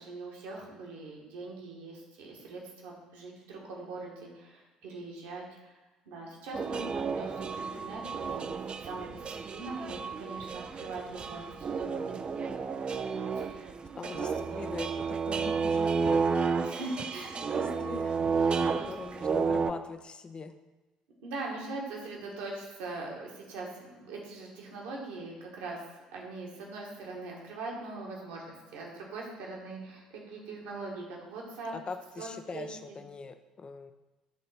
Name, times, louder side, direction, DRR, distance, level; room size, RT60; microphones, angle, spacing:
voice 1, 0.0-5.8 6.0-8.5 8.8-9.2 9.4-12.6 13.3-14.5 16.6-17.9 18.4-18.9 21.2-25.8 26.1-31.7 32.2-32.7, right 3 dB, 60° right, -2 dB, 1.6 m, -42 dB
sound 1, 6.5-19.7, right 5 dB, 30° right, 0.4 m, -32 dB
voice 2, 14.0-16.3 16.7-17.0 17.4-18.2 18.9-20.6 31.7-33.9, left 4 dB, 30° left, 9 dB, 0.6 m, -42 dB
9.4 x 3.8 x 4.2 m, 1.1 s
figure-of-eight pair, 55°, 3 cm